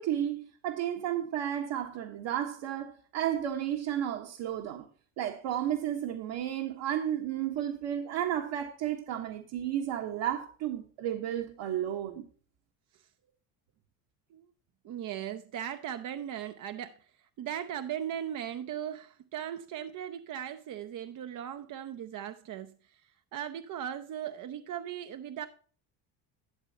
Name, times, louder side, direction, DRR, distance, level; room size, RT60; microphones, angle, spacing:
voice 1, 0.0-4.9 5.2-12.2, right 10 dB, 60° right, 1.4 m, -32 dB
voice 2, 14.8-17.0 17.4-23.0 23.3-25.5, right 10 dB, 40° right, 0.6 m, -38 dB
12.0 x 7.5 x 2.8 m
cardioid pair, 140°, 49 cm